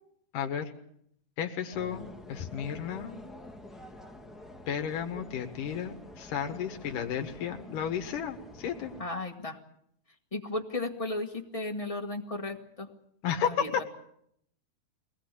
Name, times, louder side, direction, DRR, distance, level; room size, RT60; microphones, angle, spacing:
voice 1, 0.3-0.7 1.4-2.0 2.3-3.2 4.7-8.9 13.2-13.8, left 8 dB, 85° left, 4 dB, 3.2 m, -33 dB
sound 1, 1.7-9.0, left 1 dB, ahead, 0.6 m, -48 dB
voice 2, 9.0-9.6 10.3-12.9 13.4-13.8, left 2 dB, 65° left, 2 dB, 0.3 m, -35 dB
23.0 x 20.0 x 8.2 m, 0.72 s
omnidirectional pair, 3.7 m